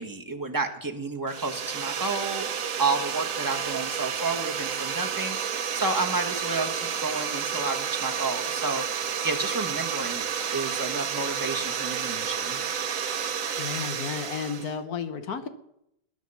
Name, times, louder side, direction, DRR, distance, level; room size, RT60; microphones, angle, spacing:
voice 1, 0.0-2.5 2.8-8.8 9.2-10.3 10.5-12.6, right 3 dB, 10° right, 2 dB, 1.4 m, -31 dB
sound 1, 1.3-14.7, right 7 dB, 55° right, 1.2 m, -31 dB
voice 2, 13.6-15.5, left 6 dB, 60° left, 10 dB, 1.4 m, -32 dB
20.0 x 9.4 x 5.7 m, 0.80 s
omnidirectional pair, 2.0 m